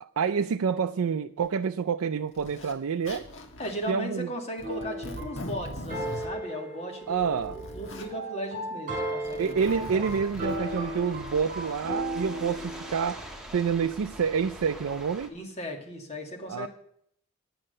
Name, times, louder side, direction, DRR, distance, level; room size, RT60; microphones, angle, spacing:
voice 1, 0.0-3.3 3.9-4.3 7.1-7.6 9.4-13.2 13.5-15.3 16.5-16.7, right 6 dB, 70° right, 0.4 m, -28 dB
Zipper (clothing), 1.4-1.5 2.3-2.8 3.0-3.9 4.6-6.3 7.0-8.1 9.1-10.6, left 1 dB, 60° left, 1.5 m, -41 dB
voice 2, 3.6-10.1 15.3-16.7, equal, 30° left, 1.8 m, -37 dB
sound 1, 4.6-12.9, right 1 dB, 35° right, 4.5 m, -35 dB
sound 2, 9.5-15.3, right 1 dB, 5° right, 1.5 m, -43 dB
11.0 x 8.7 x 6.5 m
head